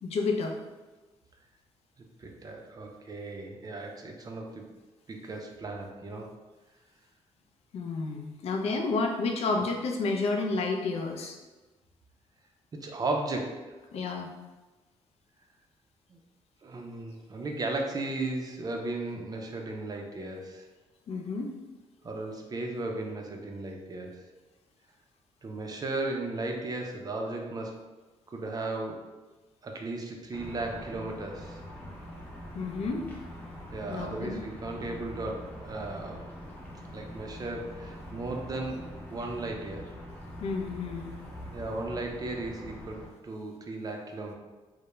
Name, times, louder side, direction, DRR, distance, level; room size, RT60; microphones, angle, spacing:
voice 1, 0.0-0.6 7.7-11.4 13.9-14.3 21.1-21.5 32.5-33.1 33.9-34.4 40.4-41.2, left 3 dB, 65° left, 2 dB, 0.4 m, -30 dB
voice 2, 2.2-4.7 5.1-6.3 12.8-13.6 16.1-16.2 16.6-20.7 22.0-24.2 25.4-27.8 28.3-29.0 29.6-31.6 33.7-36.3 36.9-38.8 39.1-39.9 41.5-44.3, right 2 dB, 35° right, 1 dB, 0.4 m, -35 dB
sound 1, 30.3-43.1, equal, 15° left, 0.6 m, -44 dB
2.2 x 2.0 x 3.0 m, 1.2 s
cardioid pair, 85°, 11 cm